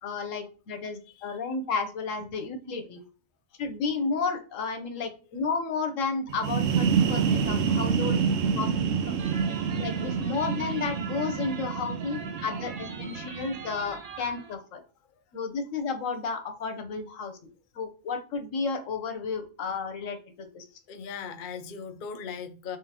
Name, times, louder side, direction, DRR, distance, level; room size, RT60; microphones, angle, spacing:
voice 1, 0.0-3.0 3.6-8.2 8.5-9.2 9.8-14.8 15.3-17.4 17.7-20.6, left 4 dB, 80° left, 1.2 m, -32 dB
sound 1, 6.3-13.9, right 6 dB, 75° right, 1.0 m, -27 dB
sound 2, 9.2-14.5, right 5 dB, 50° right, 0.5 m, -42 dB
voice 2, 20.9-22.8, left 6 dB, 55° left, 0.6 m, -38 dB
3.6 x 3.5 x 2.9 m
omnidirectional pair, 1.3 m